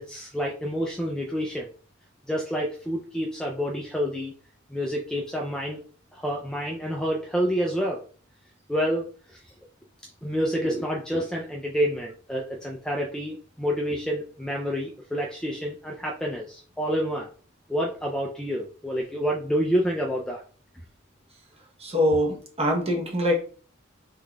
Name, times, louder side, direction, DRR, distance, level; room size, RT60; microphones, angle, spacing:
voice 1, 0.0-1.7 2.3-4.3 4.7-5.8 6.1-8.0 8.7-9.5 10.2-17.3 17.7-20.4, equal, 5° left, -2 dB, 0.3 m, -28 dB
voice 2, 21.8-23.4, left 1 dB, 30° right, 0 dB, 0.9 m, -24 dB
3.6 x 3.6 x 2.2 m, 0.41 s
head